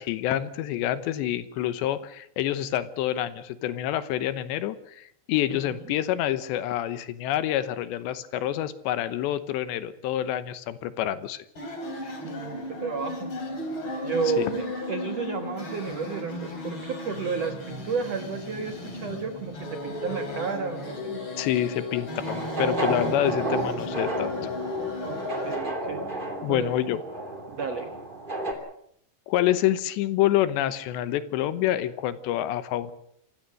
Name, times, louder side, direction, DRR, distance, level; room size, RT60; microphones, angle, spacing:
voice 1, 0.0-11.4 14.4-14.5 21.4-24.5 26.4-27.0 29.3-32.9, left 12 dB, 75° left, 14 dB, 3.1 m, -27 dB
sound 1, 11.6-25.6, left 2 dB, 25° left, 4.8 m, -35 dB
voice 2, 12.0-13.3 14.0-21.2 25.0-26.2 26.5-26.7 27.5-27.9, right 5 dB, 75° right, 8 dB, 1.5 m, -32 dB
sound 2, 21.9-28.5, right 2 dB, 15° right, 1.8 m, -32 dB
26.5 x 15.5 x 7.7 m, 0.70 s
omnidirectional pair, 5.3 m